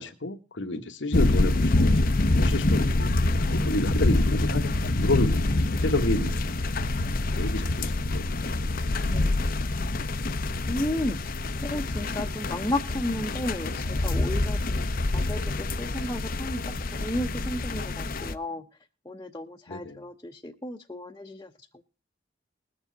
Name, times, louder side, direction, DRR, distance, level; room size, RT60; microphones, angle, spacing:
voice 1, 0.0-5.5 5.8-6.6 7.4-8.7 19.7-20.0, left 2 dB, 85° left, 6 dB, 1.4 m, -30 dB
sound 1, 1.1-18.3, left 2 dB, 50° left, 0.8 m, -26 dB
voice 2, 9.1-9.6 10.7-11.2 11.6-14.9 15.1-18.6 19.0-21.8, left 1 dB, 15° left, -1 dB, 0.9 m, -33 dB
21.0 x 7.2 x 3.9 m, 0.34 s
head